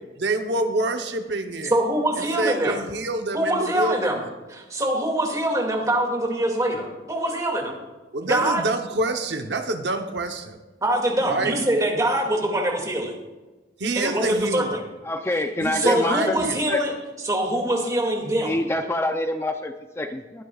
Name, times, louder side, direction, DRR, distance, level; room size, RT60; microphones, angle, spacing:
voice 1, 0.2-1.7 2.4-4.3 8.1-10.6 11.3-11.5 13.8-14.8 15.6-16.7, right 2 dB, 75° right, 6 dB, 0.9 m, -27 dB
voice 2, 1.7-2.8 3.3-4.2 4.5-7.8 8.2-8.6 10.8-13.1 14.0-14.8 15.7-16.9 17.2-18.6, right 1 dB, 20° right, 1 dB, 2.2 m, -24 dB
voice 3, 15.0-16.4 16.7-16.8 18.4-20.4, left 1 dB, 15° left, 6 dB, 0.5 m, -26 dB
21.0 x 9.9 x 2.4 m, 1.2 s
head